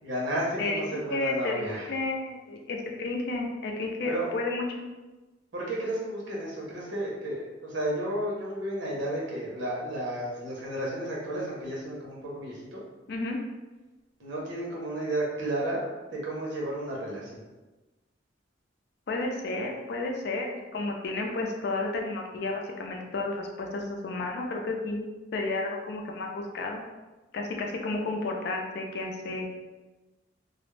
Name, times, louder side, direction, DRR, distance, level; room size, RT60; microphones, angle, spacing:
voice 1, 0.0-1.9 4.1-4.3 5.5-12.8 14.2-15.8 16.1-17.3, right 1 dB, 85° right, -4 dB, 0.8 m, -32 dB
voice 2, 0.6-4.6 13.1-13.4 19.1-25.1 25.3-26.8 27.3-29.5, left 2 dB, 60° left, 1 dB, 0.4 m, -32 dB
2.3 x 2.0 x 3.1 m, 1.1 s
head